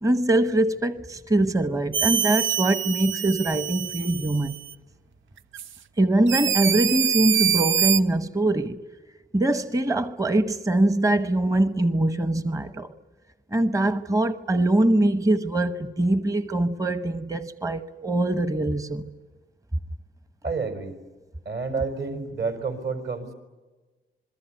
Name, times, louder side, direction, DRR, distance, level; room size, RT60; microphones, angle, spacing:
voice 1, 0.0-4.5 6.0-8.8 9.3-12.9 13.5-19.1, right 1 dB, 15° right, 1.1 m, -23 dB
sound 1, 1.9-4.7 5.5-5.7 6.3-8.0, right 9 dB, 85° right, 0.8 m, -25 dB
voice 2, 20.4-21.0 21.5-23.3, right 4 dB, 60° right, 5.5 m, -29 dB
27.0 x 22.0 x 9.3 m
cardioid pair, 105°, 20 cm